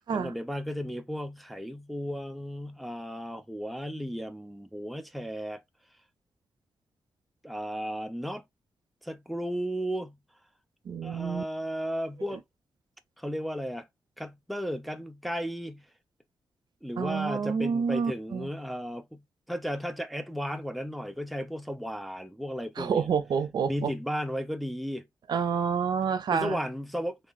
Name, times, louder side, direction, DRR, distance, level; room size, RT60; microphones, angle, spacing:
voice 1, 0.0-5.6 7.4-8.4 9.0-10.2 11.0-12.4 13.2-13.9 14.2-15.8 16.8-19.2 19.5-23.1 23.6-25.1 26.3-27.2, equal, ahead, 0.6 m, -34 dB
voice 2, 10.9-11.4 17.0-18.5 22.8-23.9 25.3-26.6, right 6 dB, 65° right, 0.5 m, -28 dB
3.2 x 3.0 x 4.0 m
cardioid pair, 105°, 8 cm